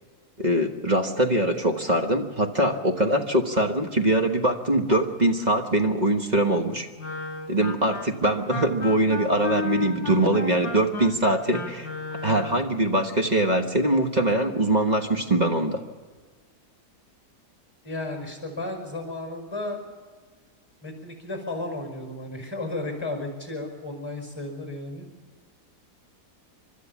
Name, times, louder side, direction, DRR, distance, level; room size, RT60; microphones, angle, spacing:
voice 1, 0.4-6.9 7.5-11.9 12.2-15.8, right 1 dB, 30° right, 4 dB, 1.3 m, -23 dB
Wind instrument woodwind instrument, 7.0-12.7, left 4 dB, 60° left, 2.2 m, -34 dB
voice 2, 17.8-19.8 20.8-25.1, left 2 dB, 15° left, 3 dB, 5.5 m, -33 dB
29.5 x 12.5 x 7.2 m, 1.5 s
omnidirectional pair, 1.7 m